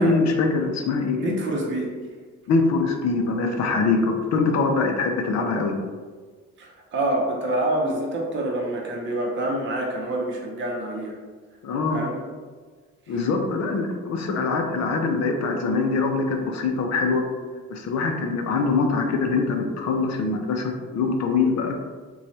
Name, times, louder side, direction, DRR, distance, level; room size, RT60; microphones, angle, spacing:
voice 1, 0.0-1.2 2.5-5.7 11.6-12.0 13.1-17.2 17.7-21.7, left 4 dB, 60° left, 3 dB, 0.5 m, -23 dB
voice 2, 1.2-2.0 6.6-11.2 11.9-12.2 13.1-13.2, right 1 dB, 40° right, -1 dB, 0.6 m, -27 dB
3.0 x 2.3 x 2.7 m, 1.5 s
cardioid pair, 90°, 30 cm